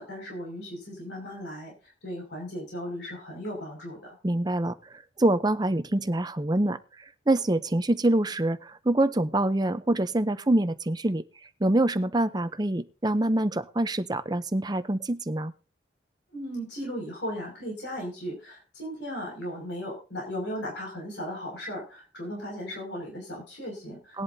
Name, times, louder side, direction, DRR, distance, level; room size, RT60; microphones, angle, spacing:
voice 1, 0.0-4.2 16.3-24.2, equal, 75° left, 0 dB, 5.9 m, -36 dB
voice 2, 4.2-15.5 24.1-24.2, right 1 dB, 20° right, 11 dB, 0.6 m, -26 dB
19.0 x 11.0 x 2.7 m, 0.33 s
head